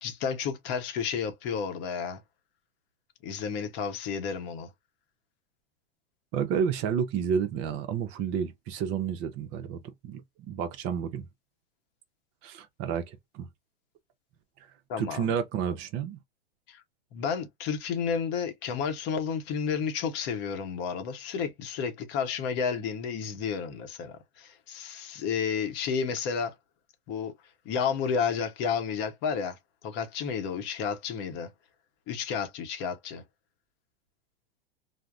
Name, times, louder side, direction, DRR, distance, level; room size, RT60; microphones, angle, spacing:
voice 1, 0.0-2.2 3.2-4.7 14.9-15.3 16.7-16.8 17.1-26.5 27.1-27.3 27.6-29.6 29.8-31.5 32.1-33.2, left 6 dB, 40° left, 0.8 m, -31 dB
voice 2, 6.3-10.2 10.5-11.3 12.4-13.5 15.0-16.2, right 7 dB, 40° right, 0.6 m, -30 dB
3.3 x 2.0 x 2.4 m
hypercardioid pair, 130°, 30 cm